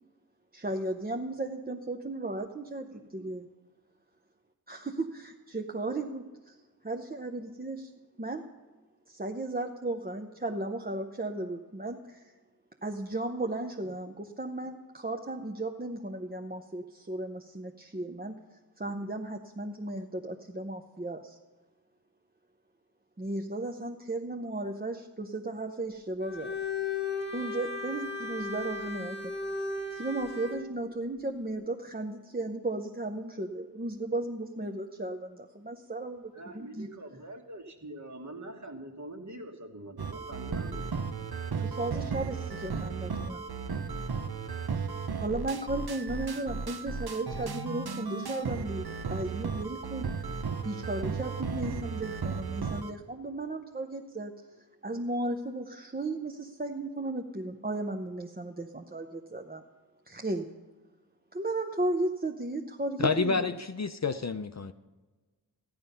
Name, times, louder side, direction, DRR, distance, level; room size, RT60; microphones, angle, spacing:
voice 1, 0.5-3.5 4.7-6.6 6.8-7.9 8.2-8.4 9.1-12.2 12.8-18.4 18.8-21.4 23.2-26.5 27.3-29.3 29.9-36.9 41.6-43.4 44.7-44.9 45.2-54.3 54.8-59.6 60.1-60.4 61.3-63.4, right 2 dB, 20° right, 3 dB, 0.7 m, -35 dB
voice 2, 2.9-3.4 36.3-40.9, right 1 dB, 45° right, 3 dB, 1.7 m, -44 dB
Bowed string instrument, 26.2-30.7, left 4 dB, 25° left, 1.2 m, -35 dB
sound 1, 40.0-52.9, right 5 dB, 60° right, 0.9 m, -35 dB
voice 3, 63.0-64.7, left 4 dB, 40° left, 10 dB, 0.5 m, -29 dB
14.0 x 10.5 x 5.6 m, 1.3 s
wide cardioid pair, 70°, 42 cm